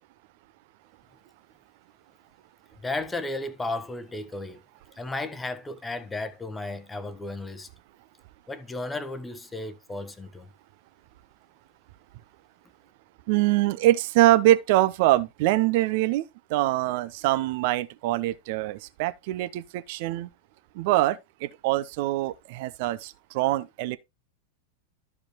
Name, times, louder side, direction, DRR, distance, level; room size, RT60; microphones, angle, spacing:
voice 1, 2.8-4.6 5.0-7.7 8.5-10.5, left 2 dB, 10° left, 1.0 m, -34 dB
voice 2, 13.3-16.2 16.5-20.3 20.8-24.0, right 16 dB, 50° right, 0.6 m, -24 dB
13.0 x 4.8 x 3.0 m
figure-of-eight pair, 90°, 0 cm